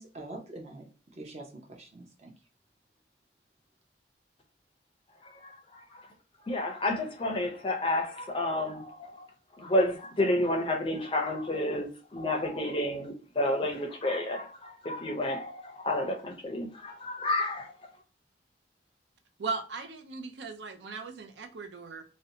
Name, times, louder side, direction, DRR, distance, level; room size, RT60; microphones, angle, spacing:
voice 1, 0.0-2.3, right 2 dB, 35° right, 0.6 m, -45 dB
voice 2, 5.2-6.1 6.4-9.3 9.6-17.7, left 1 dB, 30° left, 0.5 m, -30 dB
voice 3, 19.4-22.0, right 4 dB, 80° right, 0.5 m, -37 dB
2.6 x 2.1 x 2.7 m
head